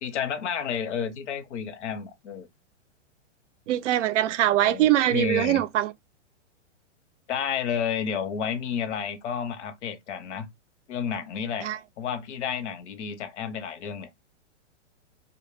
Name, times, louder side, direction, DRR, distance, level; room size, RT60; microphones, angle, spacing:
voice 1, 0.0-2.5 4.5-5.6 7.3-10.5 10.9-11.7 12.0-14.1, left 7 dB, 75° left, 0.8 m, -31 dB
voice 2, 3.7-5.9 11.6-11.8, right 13 dB, 90° right, 0.5 m, -23 dB
2.2 x 2.1 x 3.2 m
hypercardioid pair, 160°, 36 cm